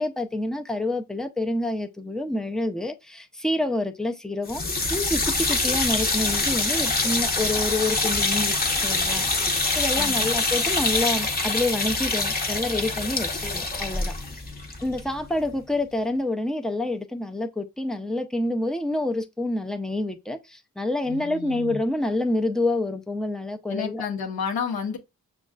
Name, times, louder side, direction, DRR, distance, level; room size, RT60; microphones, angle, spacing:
voice 1, 0.0-8.6 8.8-9.2 9.7-14.1 14.8-24.1, left 2 dB, ahead, 0.5 m, -27 dB
sound 1, 4.5-15.5, left 3 dB, 25° left, 0.8 m, -25 dB
voice 2, 10.0-10.3 21.1-21.8 23.7-25.0, left 6 dB, 80° left, 0.9 m, -31 dB
6.1 x 2.3 x 2.4 m
cardioid pair, 85°, 36 cm